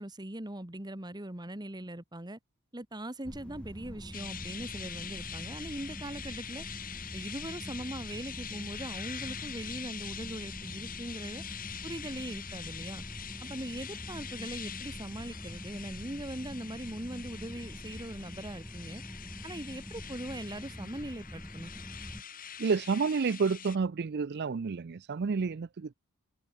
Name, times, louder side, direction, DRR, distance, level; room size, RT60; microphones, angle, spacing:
voice 1, 0.0-2.4 2.7-6.6 7.1-11.4 11.8-13.0 13.4-19.0 19.4-21.7, right 1 dB, 20° right, 1.5 m, -41 dB
sound 1, 3.2-22.2, equal, 5° left, 2.9 m, -45 dB
sound 2, 4.1-23.8, left 8 dB, 40° left, 7.7 m, -44 dB
voice 2, 22.6-25.9, right 5 dB, 50° right, 0.4 m, -30 dB
head